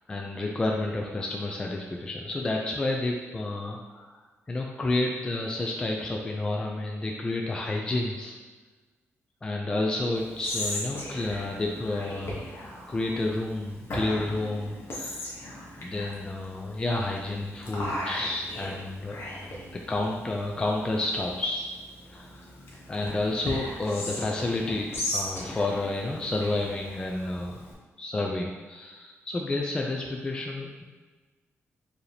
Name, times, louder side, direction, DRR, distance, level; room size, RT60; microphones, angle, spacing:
voice 1, 0.1-4.2 4.5-8.4 9.4-12.5 12.9-15.3 15.8-19.2 19.7-21.7 22.1-22.5 22.9-30.8, left 2 dB, 20° left, -1 dB, 0.3 m, -30 dB
Whispering, 10.2-27.7, left 1 dB, 55° left, 1.0 m, -38 dB
4.8 x 2.8 x 3.2 m, 1.3 s
wide cardioid pair, 155°, 5 cm